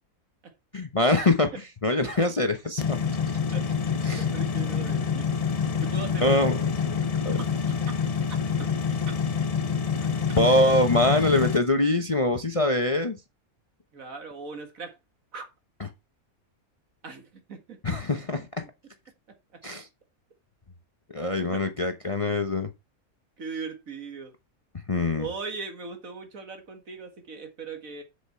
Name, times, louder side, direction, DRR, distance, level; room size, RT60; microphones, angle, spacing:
voice 1, 0.7-1.5 1.8-3.0 4.1-4.2 6.2-6.6 7.2-7.4 10.4-13.1 17.8-18.5 19.6-19.9 21.1-22.7 24.9-25.3, left 2 dB, 30° left, 0.8 m, -23 dB
voice 2, 1.9-2.3 3.5-3.7 3.9-5.3 5.8-6.5 7.4-7.7 8.6-8.8 10.0-10.1 13.9-14.9 15.3-15.4 17.0-18.0 21.5-21.6 23.4-24.3 25.2-28.0, right 4 dB, 65° right, 2.2 m, -39 dB
sound 1, 2.8-11.6, left 6 dB, 65° left, 0.3 m, -27 dB
7.6 x 6.9 x 4.4 m
omnidirectional pair, 1.5 m